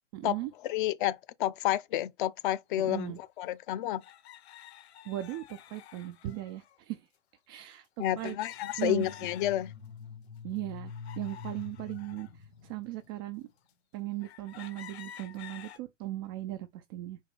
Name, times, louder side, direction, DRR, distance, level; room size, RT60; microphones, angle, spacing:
voice 1, 0.1-0.5 2.8-3.2 5.1-7.0 7.5-8.4 8.8-9.1 10.4-12.3 12.6-13.5 13.9-17.2, right 15 dB, 20° right, 0.3 m, -38 dB
voice 2, 0.6-4.0 8.0-9.7, left 13 dB, 45° left, 0.7 m, -30 dB
sound 1, 2.9-3.0 4.0-6.8 8.2-9.9 10.4-12.3 13.0-13.1 13.7-13.8 14.2-15.8, left 11 dB, 60° left, 1.2 m, -50 dB
sound 2, 8.6-13.5, left 5 dB, 85° left, 1.9 m, -46 dB
5.2 x 4.2 x 5.2 m
hypercardioid pair, 115°, 37 cm